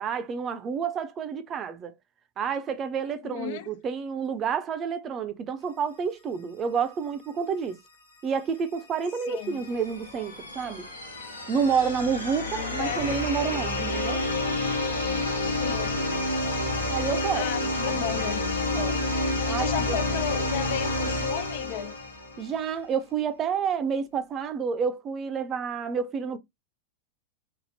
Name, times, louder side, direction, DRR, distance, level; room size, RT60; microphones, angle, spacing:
voice 1, 0.0-2.0 2.4-7.8 8.2-10.9 11.5-14.2 16.9-17.5 18.7-19.0 19.5-20.0 22.4-26.4, right 6 dB, 30° right, 0.5 m, -29 dB
voice 2, 3.2-3.7 9.3-9.7 12.6-13.0 15.4-16.1 17.3-18.5 19.2-22.0, left 11 dB, 50° left, 0.3 m, -34 dB
sound 1, 8.8-22.6, left 2 dB, 75° left, 1.1 m, -29 dB
3.5 x 2.0 x 4.0 m
figure-of-eight pair, 90°, 0 cm